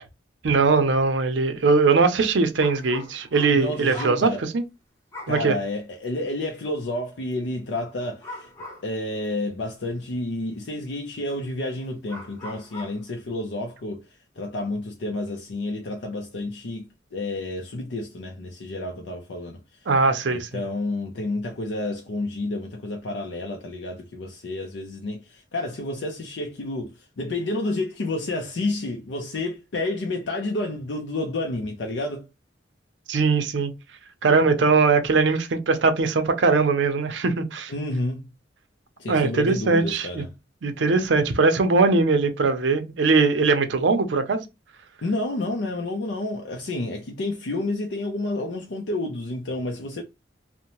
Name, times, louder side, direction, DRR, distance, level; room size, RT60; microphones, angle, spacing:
voice 1, 0.4-4.6 5.3-5.6 19.9-20.6 33.1-33.7 34.2-37.7 39.1-40.2 40.6-44.4, right 4 dB, 80° right, 0.5 m, -21 dB
sound 1, 2.6-4.3 5.1-5.4 6.0-6.1 8.0-8.9 9.6-9.7 11.4-11.5 12.1-13.0, left 2 dB, 15° left, 0.9 m, -40 dB
voice 2, 3.5-4.4 5.3-16.8 17.1-19.9 20.3-32.3 37.7-38.2 39.0-40.3 45.0-50.0, left 2 dB, 80° left, 0.5 m, -30 dB
2.7 x 2.1 x 2.9 m
head